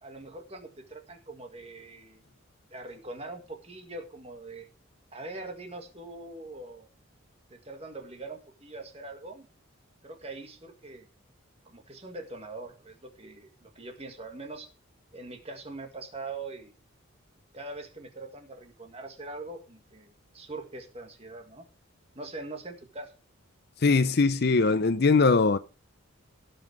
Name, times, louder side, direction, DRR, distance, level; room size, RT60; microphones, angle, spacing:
voice 1, 0.0-2.2 2.7-4.7 5.1-6.9 7.5-9.5 10.0-11.1 11.7-14.7 15.1-16.7 17.5-21.7 22.1-23.1, right 2 dB, 30° right, 1.8 m, -42 dB
voice 2, 23.8-25.6, left 4 dB, 50° left, 0.6 m, -21 dB
16.5 x 5.6 x 5.1 m
head